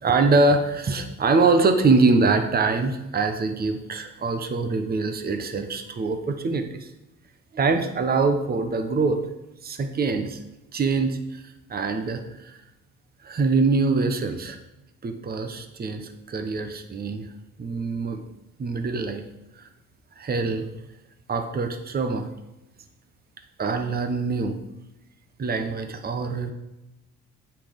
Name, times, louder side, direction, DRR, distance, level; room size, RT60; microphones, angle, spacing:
voice 1, 0.0-6.9 7.5-9.2 9.6-10.4 10.7-11.4 11.7-12.6 13.2-14.6 15.0-17.3 17.6-18.2 18.6-19.2 19.6-19.7 20.2-20.7 21.3-22.3 23.6-24.6 25.4-26.5, right 3 dB, 30° right, 7 dB, 0.9 m, -24 dB
8.3 x 5.6 x 5.2 m, 0.93 s
cardioid pair, 115°, 31 cm